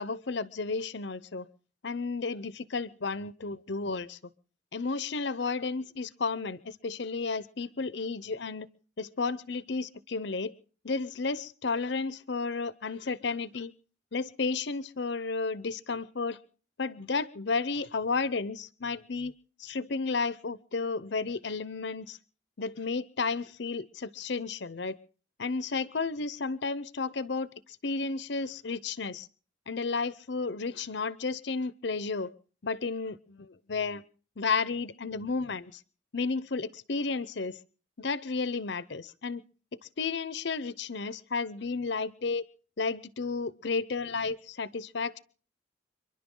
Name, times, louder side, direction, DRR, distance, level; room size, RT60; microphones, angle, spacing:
voice 1, 0.0-1.5 1.8-4.2 4.7-8.7 9.0-10.5 10.8-13.7 14.1-16.4 16.8-19.3 19.6-22.2 22.6-25.0 25.4-27.5 27.8-29.3 29.7-32.3 32.6-34.0 34.4-35.8 36.1-37.6 38.0-39.4 39.8-42.4 42.8-45.2, left 4 dB, 65° left, 17 dB, 0.7 m, -32 dB
30.0 x 11.0 x 3.8 m, 0.42 s
head